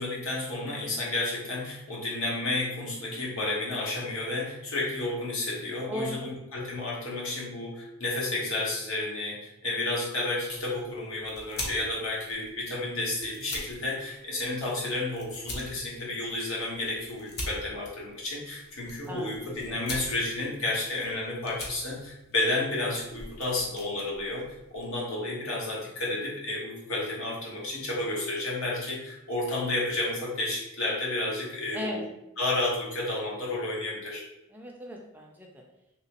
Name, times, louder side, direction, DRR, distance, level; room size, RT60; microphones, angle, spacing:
voice 1, 0.0-32.0 32.4-34.2, left 2 dB, 80° left, -4 dB, 1.1 m, -31 dB
voice 2, 5.9-6.3 19.1-19.8 31.7-32.0 34.5-35.6, left 1 dB, 10° right, 0 dB, 0.4 m, -37 dB
sound 1, 10.5-25.0, left 1 dB, 50° left, 0.7 m, -44 dB
3.0 x 2.9 x 2.9 m, 0.85 s
head